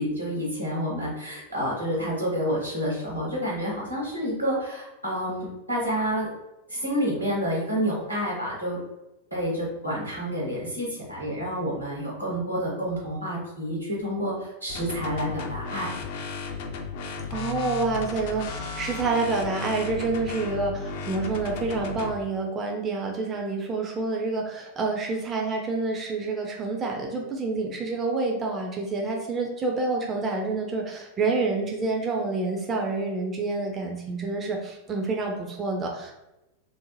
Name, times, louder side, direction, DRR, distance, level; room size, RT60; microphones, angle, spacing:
voice 1, 0.0-6.3 6.7-8.8 9.3-15.9, equal, 85° right, -5 dB, 1.1 m, -29 dB
sound 1, 14.7-22.1, left 5 dB, 50° left, 0.3 m, -35 dB
voice 2, 17.3-36.2, right 3 dB, 25° right, 1 dB, 0.4 m, -28 dB
2.6 x 2.0 x 3.1 m, 0.95 s
figure-of-eight pair, 90°, 0 cm